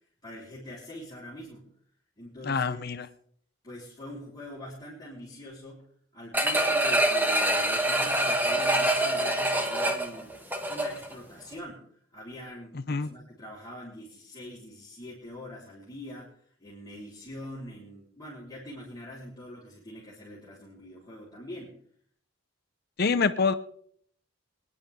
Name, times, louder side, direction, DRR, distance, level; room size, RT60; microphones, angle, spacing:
voice 1, 0.2-1.7 2.2-3.0 3.6-5.9 6.1-11.8 12.1-16.3 16.6-21.7, left 1 dB, 20° left, -8 dB, 4.4 m, -43 dB
voice 2, 2.4-3.1 12.7-13.1 23.0-23.5, left 4 dB, 50° left, 12 dB, 0.7 m, -26 dB
sound 1, 6.3-11.1 11.5-11.6, right 1 dB, 10° right, 1.4 m, -25 dB
24.5 x 10.5 x 3.7 m, 0.62 s
head